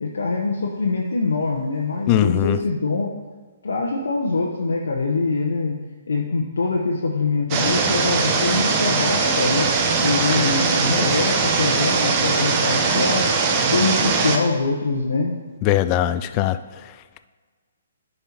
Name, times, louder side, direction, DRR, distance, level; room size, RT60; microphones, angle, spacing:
voice 1, 0.0-3.1 3.6-5.8 6.1-9.7 10.0-13.2 13.7-15.3, left 3 dB, 70° left, -1 dB, 0.8 m, -24 dB
voice 2, 2.1-2.6 15.6-16.6, left 13 dB, 30° left, 12 dB, 0.3 m, -20 dB
sound 1, 7.5-14.4, right 4 dB, 30° right, 0.8 m, -20 dB
10.5 x 5.5 x 2.9 m, 1.5 s
figure-of-eight pair, 130°, 0 cm